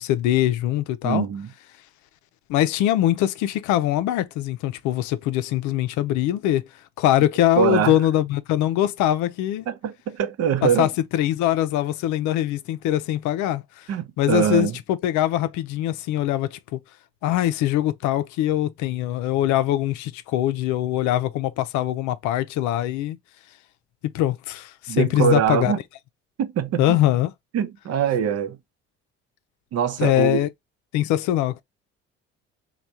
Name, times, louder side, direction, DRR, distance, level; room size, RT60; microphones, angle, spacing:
voice 1, 0.0-1.3 2.5-6.7 7.0-9.7 10.6-13.8 14.2-16.8 17.2-23.2 24.0-25.7 26.8-27.3 30.0-30.5 30.9-31.6, left 13 dB, 65° left, 0.5 m, -22 dB
voice 2, 1.0-1.5 7.6-7.9 9.7-10.9 13.9-14.7 24.9-25.8 26.4-27.0 27.5-28.6 29.7-30.4, right 8 dB, 50° right, 0.7 m, -23 dB
3.4 x 2.3 x 4.2 m
hypercardioid pair, 60°, 31 cm